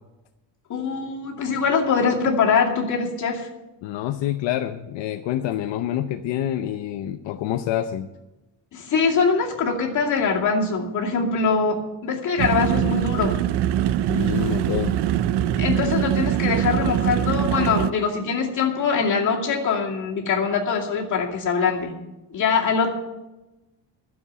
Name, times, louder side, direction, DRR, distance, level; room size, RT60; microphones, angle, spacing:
voice 1, 0.7-3.5 8.7-13.4 15.6-21.9 22.3-22.9, left 5 dB, 40° left, -1 dB, 2.5 m, -23 dB
voice 2, 3.8-8.1 14.1-15.0, left 12 dB, 75° left, 7 dB, 0.8 m, -27 dB
sound 1, 12.4-17.9, right 11 dB, 65° right, 0.6 m, -23 dB
13.0 x 7.3 x 9.2 m, 1.0 s
cardioid pair, 180°, 44 cm